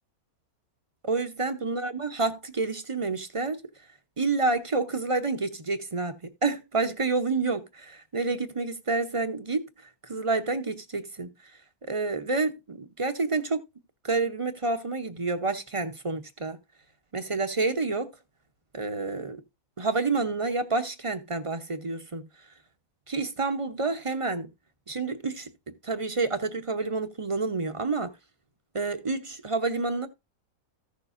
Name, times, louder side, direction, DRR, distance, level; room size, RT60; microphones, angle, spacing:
voice 1, 1.0-3.6 4.2-6.2 6.4-9.7 10.0-11.3 11.8-13.6 14.0-16.6 17.1-18.1 18.7-19.4 19.8-22.2 23.1-24.5 24.9-25.5 25.8-28.1 28.7-30.1, right 3 dB, 35° right, 0.6 m, -28 dB
14.5 x 6.7 x 2.5 m
omnidirectional pair, 1.5 m